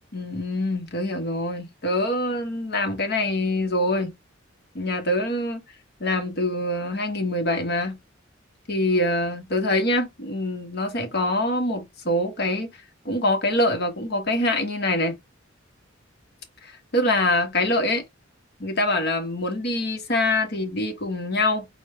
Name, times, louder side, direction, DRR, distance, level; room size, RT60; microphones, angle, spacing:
voice 1, 0.1-4.1 4.7-5.6 6.0-8.0 8.7-12.7 13.0-15.1 16.6-18.0 18.6-21.7, left 1 dB, 55° left, 1.2 m, -24 dB
6.1 x 2.2 x 3.5 m
head